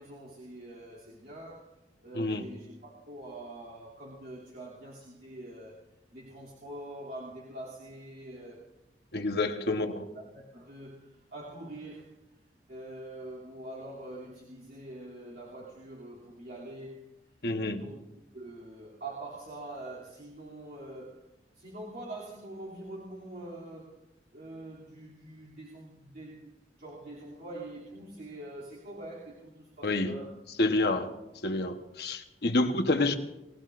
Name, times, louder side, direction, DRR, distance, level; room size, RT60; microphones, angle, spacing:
voice 1, 0.0-1.7 2.0-8.7 9.7-12.1 12.7-17.1 17.8-18.0 18.3-21.2 21.5-24.0 24.3-30.3 30.8-31.2, right 1 dB, 60° right, 2.9 m, -44 dB
voice 2, 9.1-10.0 17.4-17.9 29.8-30.2 30.6-31.1 31.4-33.1, left 2 dB, 65° left, 1.1 m, -28 dB
28.5 x 17.5 x 2.6 m
head